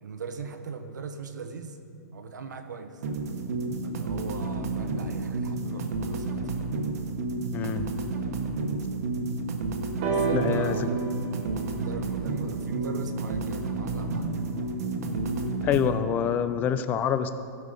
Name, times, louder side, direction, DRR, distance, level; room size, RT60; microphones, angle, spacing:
voice 1, 0.0-1.8 2.1-3.0 3.8-6.5 10.0-11.4 11.7-14.3, right 5 dB, 85° right, 7 dB, 1.1 m, -39 dB
sound 1, 3.0-15.9, right 3 dB, 60° right, 1.3 m, -31 dB
voice 2, 7.5-7.9 10.3-10.8 15.6-17.3, left 8 dB, 20° left, 12 dB, 0.4 m, -26 dB
sound 2, 10.0-13.8 14.8-14.9, right 6 dB, 35° right, 1.6 m, -33 dB
16.0 x 5.6 x 5.1 m, 2.6 s
hypercardioid pair, 150°, 9 cm